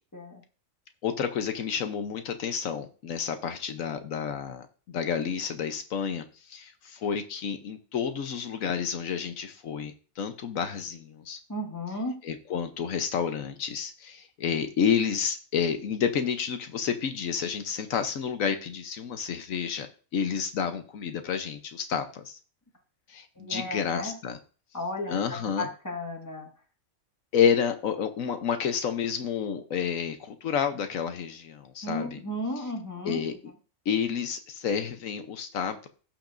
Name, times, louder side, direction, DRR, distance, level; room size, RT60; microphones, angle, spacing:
voice 1, 1.0-11.4 12.2-19.9 20.1-22.4 23.1-24.4 25.1-25.7 27.3-32.2 33.0-33.3 33.9-35.9, left 7 dB, 80° left, 8 dB, 1.2 m, -30 dB
voice 2, 11.5-12.2 23.4-24.2 24.7-26.5 31.8-33.3, left 1 dB, 15° left, 1 dB, 1.8 m, -34 dB
17.0 x 5.9 x 2.6 m, 0.39 s
omnidirectional pair, 1.4 m